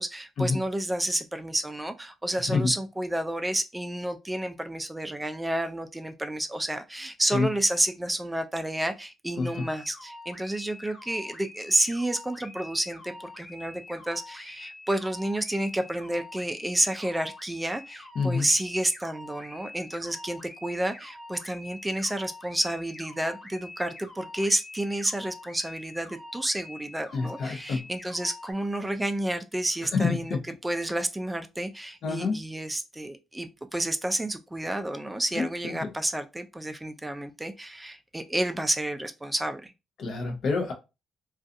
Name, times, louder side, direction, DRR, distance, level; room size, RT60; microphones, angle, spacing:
voice 1, 0.0-30.4 30.6-39.7, right 1 dB, 10° right, 0.3 m, -30 dB
sound 1, 9.4-28.5, left 2 dB, 40° left, 1.2 m, -46 dB
voice 2, 18.2-18.5 27.1-27.8 29.9-30.4 32.0-32.4 35.4-35.9 40.0-40.7, left 4 dB, 65° left, 0.7 m, -27 dB
2.5 x 2.3 x 2.5 m
cardioid pair, 90°, 0 cm